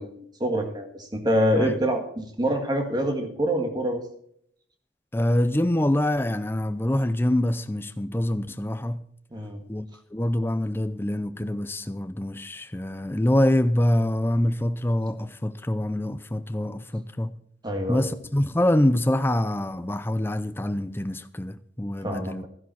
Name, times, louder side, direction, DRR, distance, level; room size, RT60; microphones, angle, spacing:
voice 1, 0.0-4.0 9.3-9.6 17.6-18.2 22.0-22.5, equal, 20° right, 1.8 m, -26 dB
voice 2, 5.1-9.0 9.7-17.3 17.9-22.5, left 1 dB, 10° left, 0.5 m, -25 dB
13.0 x 11.0 x 4.4 m
head